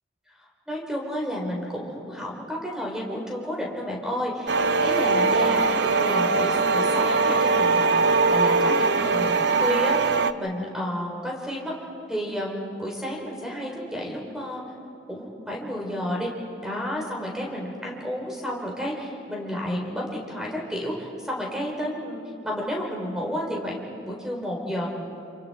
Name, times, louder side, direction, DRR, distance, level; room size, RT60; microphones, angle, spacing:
voice 1, 0.7-4.5 4.8-8.0 8.3-11.7 12.1-14.6 15.1-16.3 16.6-24.9, equal, 5° right, -2 dB, 4.0 m, -31 dB
sound 1, 4.5-10.3, right 4 dB, 60° right, 0.6 m, -21 dB
29.5 x 28.5 x 4.3 m, 2.6 s
head